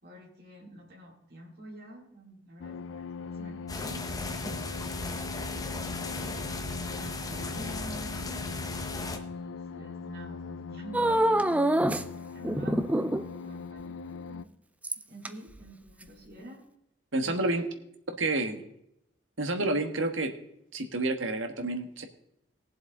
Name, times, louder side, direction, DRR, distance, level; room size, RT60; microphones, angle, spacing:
voice 1, 0.0-4.7 5.4-5.9 6.2-8.5 9.1-11.8 12.3-12.9 13.4-14.5 15.1-16.6 17.2-17.8 18.3-18.5, right 1 dB, 55° right, -4 dB, 4.0 m, -48 dB
sound 1, 2.6-14.5, left 5 dB, 90° left, 0.5 m, -40 dB
sound 2, 3.7-9.2, left 2 dB, 20° left, 0.9 m, -36 dB
Whining Puppy (Shih Tzu), 10.9-12.0 12.4-13.4 14.8-15.3 16.0-16.1, right 1 dB, 5° right, 0.4 m, -25 dB
voice 2, 17.1-17.6 18.2-18.6 19.4-20.3 20.7-22.0, right 2 dB, 85° right, 6 dB, 1.5 m, -29 dB
18.5 x 7.5 x 3.8 m, 0.78 s
head